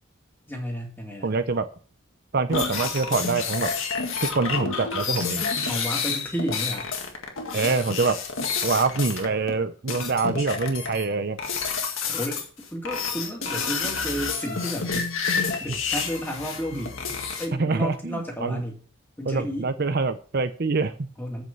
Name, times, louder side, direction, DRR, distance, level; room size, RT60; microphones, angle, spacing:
voice 1, 0.5-1.3 5.7-6.9 12.1-15.1 15.4-17.0 17.4-18.8 19.2-19.7 21.2-21.4, equal, 10° left, 0 dB, 2.4 m, -32 dB
voice 2, 1.2-1.7 2.3-3.7 4.2-5.5 7.5-8.2 8.6-11.4 16.7-16.8 17.5-18.6 19.2-21.1, right 4 dB, 50° right, 10 dB, 0.6 m, -25 dB
sound 1, 2.5-9.6 9.9-11.0 11.4-12.5 12.8-17.5, left 5 dB, 70° left, 1.9 m, -29 dB
8.2 x 6.3 x 6.8 m, 0.41 s
head